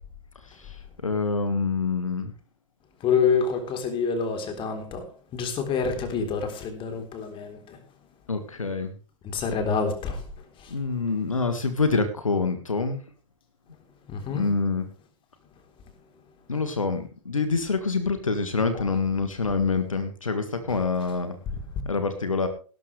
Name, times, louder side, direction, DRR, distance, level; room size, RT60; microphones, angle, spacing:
voice 1, 0.6-2.3 8.3-8.9 10.7-13.0 14.3-14.9 16.5-21.3 21.8-22.5, left 4 dB, 80° left, 9 dB, 1.7 m, -26 dB
voice 2, 3.0-5.1 5.3-7.8 9.2-10.2 10.6-10.8 14.1-14.5 18.7-18.9 20.7-20.8, left 5 dB, 30° left, 6 dB, 3.6 m, -27 dB
18.5 x 12.0 x 3.3 m, 0.38 s
figure-of-eight pair, 95°, 17 cm